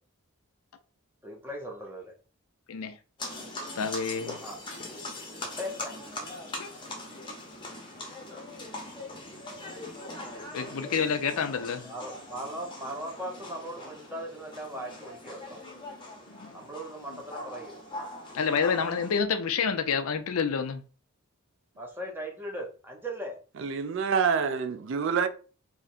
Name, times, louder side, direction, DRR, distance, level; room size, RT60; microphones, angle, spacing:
voice 1, 1.2-2.1 4.4-4.6 5.6-5.9 11.8-15.6 16.5-17.7 21.8-23.4, right 1 dB, 10° right, 0.6 m, -38 dB
sound 1, 3.2-19.2, left 2 dB, 20° left, 0.7 m, -41 dB
voice 2, 3.8-4.4 6.6-6.7 10.5-11.9 16.3-16.7 17.1-17.2 18.3-20.8, left 6 dB, 75° left, 0.4 m, -29 dB
voice 3, 23.6-25.3, right 6 dB, 55° right, 0.3 m, -27 dB
2.8 x 2.5 x 4.1 m
head